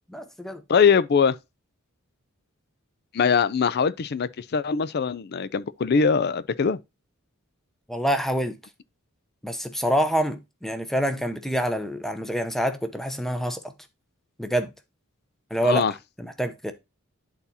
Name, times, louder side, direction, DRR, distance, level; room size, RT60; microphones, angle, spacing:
voice 1, 0.1-0.6 7.9-8.6 9.4-13.6 14.4-14.7 15.5-15.8 16.2-16.7, equal, ahead, 0.7 m, -26 dB
voice 2, 0.7-1.3 3.1-6.8 15.6-15.9, left 6 dB, 50° left, 0.4 m, -22 dB
10.5 x 4.2 x 2.7 m
head